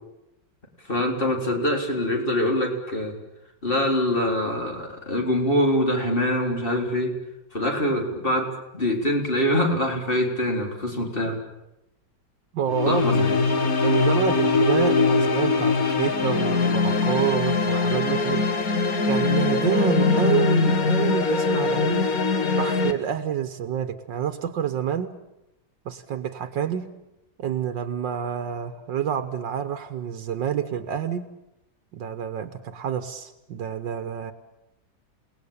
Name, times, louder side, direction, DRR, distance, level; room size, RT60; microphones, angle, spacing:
voice 1, 0.9-3.1 3.6-7.1 7.5-8.5 8.7-11.4 12.9-13.4, left 1 dB, 30° left, 1 dB, 4.0 m, -24 dB
voice 2, 12.5-13.1 13.8-18.5 19.1-22.1 22.6-25.2 25.9-26.9 27.4-31.3 31.9-34.3, right 8 dB, 80° right, 9 dB, 1.8 m, -28 dB
sound 1, 12.7-22.9, left 4 dB, 50° left, 2.0 m, -22 dB
28.5 x 18.5 x 8.7 m, 0.91 s
omnidirectional pair, 2.0 m